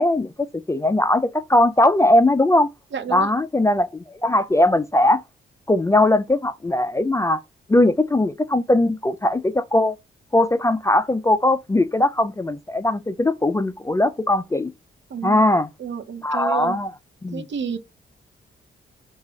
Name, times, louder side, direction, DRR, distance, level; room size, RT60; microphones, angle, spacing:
voice 1, 0.0-2.7 3.1-5.2 5.7-7.4 7.7-9.9 10.3-14.7 15.2-15.7 16.2-16.9 17.2-17.4, left 1 dB, 15° left, 0.3 m, -19 dB
voice 2, 2.9-3.3 15.1-15.4 15.8-16.8 17.3-17.8, right 7 dB, 65° right, 0.8 m, -30 dB
5.4 x 2.4 x 3.3 m
cardioid pair, 80°, 21 cm